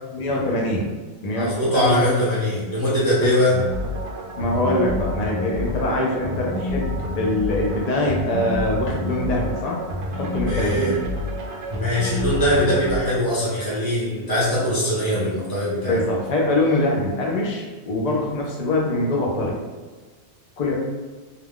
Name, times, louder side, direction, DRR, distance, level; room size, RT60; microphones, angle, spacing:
voice 1, 0.1-0.9 1.2-2.1 4.4-9.8 10.0-10.9 15.9-19.6 20.6-20.7, left 1 dB, 60° left, -2 dB, 0.4 m, -23 dB
voice 2, 1.3-3.6 10.4-10.9 11.7-16.0, equal, 30° right, -9 dB, 0.5 m, -21 dB
sound 1, 3.5-13.0, left 1 dB, 80° right, 0.8 m, -29 dB
2.3 x 2.2 x 3.4 m, 1.3 s
omnidirectional pair, 1.1 m